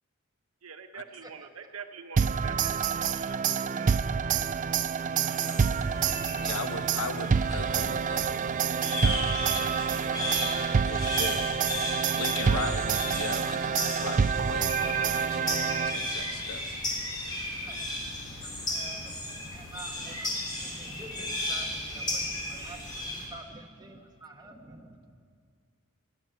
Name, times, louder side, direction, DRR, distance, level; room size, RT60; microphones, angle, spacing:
voice 1, 0.6-4.2 5.0-5.8, right 6 dB, 85° right, 7 dB, 1.0 m, -46 dB
sound 1, 2.2-16.3, right 6 dB, 35° right, 0.4 m, -27 dB
sound 2, 5.2-23.3, left 1 dB, 20° left, 3.3 m, -35 dB
voice 2, 6.4-8.3 8.9-9.9 10.8-11.4 12.0-16.8 18.4-18.7, left 4 dB, 75° left, 10 dB, 0.8 m, -39 dB
voice 3, 17.6-18.0 18.4-19.1 19.5-25.1, right 2 dB, 20° right, 2 dB, 1.3 m, -48 dB
18.0 x 8.8 x 9.0 m, 2.2 s
head